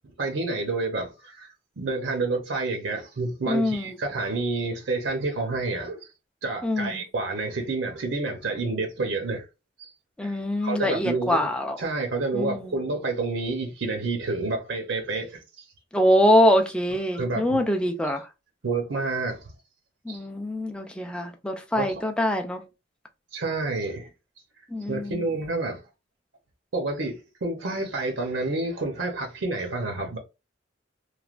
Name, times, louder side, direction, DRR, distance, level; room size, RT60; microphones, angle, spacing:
voice 1, 0.0-6.1 6.4-9.4 9.8-9.9 10.2-15.7 17.1-17.6 18.0-18.1 18.6-19.4 20.1-20.2 21.7-22.0 23.3-24.1 24.9-25.8 26.7-30.2, right 3 dB, 70° right, 0.7 m, -29 dB
voice 2, 3.5-3.9 6.6-7.0 10.2-11.8 12.3-12.7 15.9-18.3 20.1-22.6 24.7-25.2, equal, 5° left, 0.4 m, -24 dB
3.1 x 2.2 x 2.4 m
head